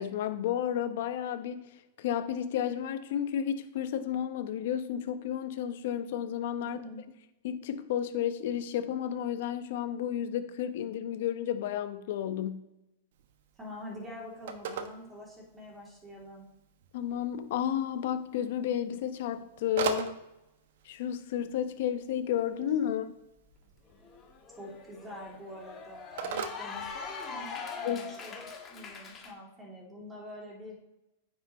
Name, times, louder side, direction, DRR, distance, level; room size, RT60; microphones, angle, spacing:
voice 1, 0.0-1.6 2.0-6.8 7.4-12.7 16.9-20.2 20.8-23.0 27.8-28.0, left 10 dB, 60° left, 9 dB, 0.8 m, -32 dB
voice 2, 6.6-7.0 13.6-16.5 22.8-23.0 24.6-30.8, left 1 dB, 10° right, -3 dB, 2.9 m, -46 dB
Telephone, 13.1-27.6, right 6 dB, 65° right, 1.0 m, -43 dB
Cheering / Applause, 23.5-23.6 23.9-29.3, left 5 dB, 20° left, 1.4 m, -42 dB
9.4 x 6.4 x 3.1 m, 0.93 s
hypercardioid pair, 140°, 0 cm